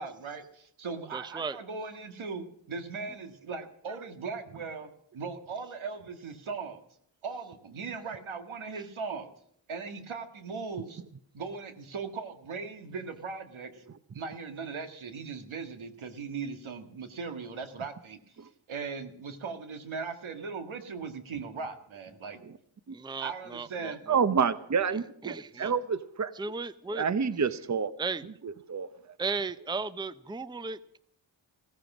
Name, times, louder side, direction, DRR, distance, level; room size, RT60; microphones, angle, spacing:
voice 1, 0.0-6.8 7.2-9.3 9.7-11.0 11.3-13.8 14.1-22.4 23.2-24.0 25.5-25.7, right 5 dB, 80° right, 8 dB, 1.9 m, -39 dB
voice 2, 1.1-1.6 8.7-8.8 22.9-24.2 25.2-25.7 26.3-27.0 28.0-28.2 29.2-31.0, right 4 dB, 10° right, 15 dB, 0.6 m, -35 dB
voice 3, 24.1-26.3 27.0-27.9 28.4-28.9, right 6 dB, 35° right, 14 dB, 0.9 m, -28 dB
16.5 x 14.5 x 6.1 m, 0.68 s
cardioid pair, 75°, 47 cm